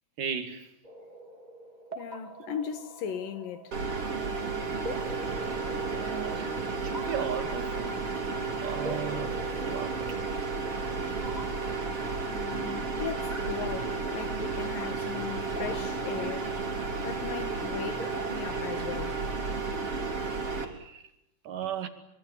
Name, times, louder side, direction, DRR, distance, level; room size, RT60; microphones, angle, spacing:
voice 1, 0.2-0.7 2.4-2.6 6.0-6.6 6.8-8.2 8.6-10.2 20.6-21.0 21.4-21.9, right 7 dB, 70° right, 3.9 m, -36 dB
sound 1, 0.8-18.6, right 1 dB, 15° right, 2.5 m, -45 dB
voice 2, 2.0-3.8 12.3-16.5 17.0-19.2, left 8 dB, 85° left, 3.4 m, -38 dB
sound 2, 3.7-20.7, right 4 dB, 45° right, 4.2 m, -32 dB
25.5 x 25.5 x 7.6 m
omnidirectional pair, 3.9 m